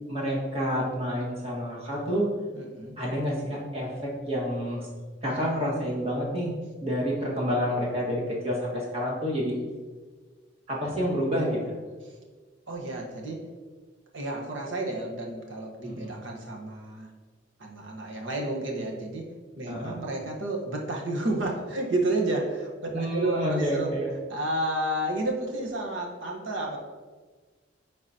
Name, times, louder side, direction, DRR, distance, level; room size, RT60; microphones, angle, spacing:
voice 1, 0.1-2.3 3.0-4.9 5.2-6.5 6.8-9.6 10.7-11.8 15.8-16.1 19.7-20.0 22.9-24.1, equal, 35° right, -4 dB, 1.7 m, -29 dB
voice 2, 2.5-3.0 12.7-13.4 14.1-17.1 17.6-23.9 24.3-26.8, right 2 dB, 85° right, -1 dB, 1.2 m, -31 dB
10.5 x 3.9 x 2.8 m, 1.4 s
head